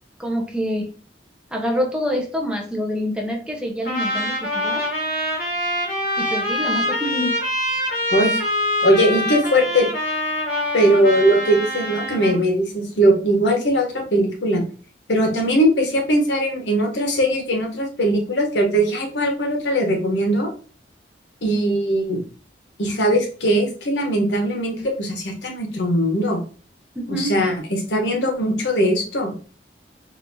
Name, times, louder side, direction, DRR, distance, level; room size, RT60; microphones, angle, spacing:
voice 1, 0.2-0.9 1.5-4.8 6.2-7.4 27.0-27.4, equal, 5° right, 0 dB, 0.5 m, -26 dB
Trumpet, 3.8-12.4, left 1 dB, 60° left, 1.6 m, -24 dB
voice 2, 8.1-8.4 8.8-9.8 10.7-14.6 15.1-20.5 21.4-22.2 22.8-26.4 27.1-29.3, equal, 85° left, 2 dB, 0.9 m, -20 dB
4.1 x 2.4 x 2.6 m, 0.39 s
head